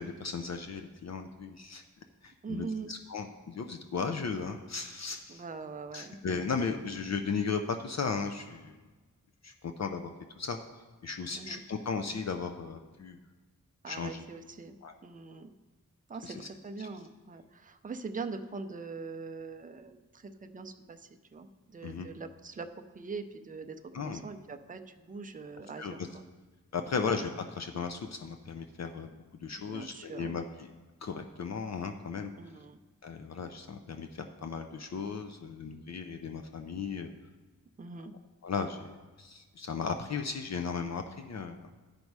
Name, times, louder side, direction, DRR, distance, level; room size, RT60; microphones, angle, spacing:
voice 1, 0.0-1.8 2.2-5.4 5.9-8.8 9.4-10.1 10.4-10.6 11.0-13.2 13.9-14.2 14.8-14.9 16.2-16.5 16.8-16.9 21.8-22.1 23.9-24.2 25.8-25.9 26.7-29.1 29.4-30.7 31.0-32.3 33.0-37.1 38.4-41.7, left 5 dB, 55° left, 6 dB, 0.5 m, -36 dB
voice 2, 2.4-2.9 5.3-6.2 11.3-11.6 13.8-14.8 15.0-15.5 16.1-22.7 22.9-26.2 29.6-30.3 32.4-32.8 37.8-38.1, right 4 dB, 25° right, 7 dB, 0.5 m, -42 dB
11.5 x 5.3 x 4.7 m, 1.3 s
wide cardioid pair, 130°, 32 cm